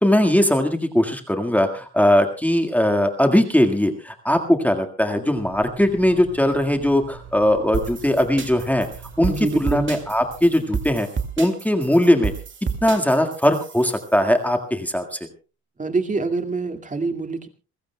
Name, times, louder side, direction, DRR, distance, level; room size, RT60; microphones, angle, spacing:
voice 1, 0.0-8.9 9.2-11.1 11.4-12.3 12.8-15.2, left 1 dB, 5° left, 5 dB, 1.8 m, -19 dB
sound 1, 5.4-10.5, right 6 dB, 65° right, 5.9 m, -43 dB
sound 2, 7.7-14.1, right 6 dB, 40° right, 2.3 m, -30 dB
voice 2, 9.2-9.9 15.8-17.5, right 3 dB, 25° right, 7 dB, 2.2 m, -25 dB
28.0 x 15.5 x 2.3 m, 0.34 s
cardioid pair, 90°, 30 cm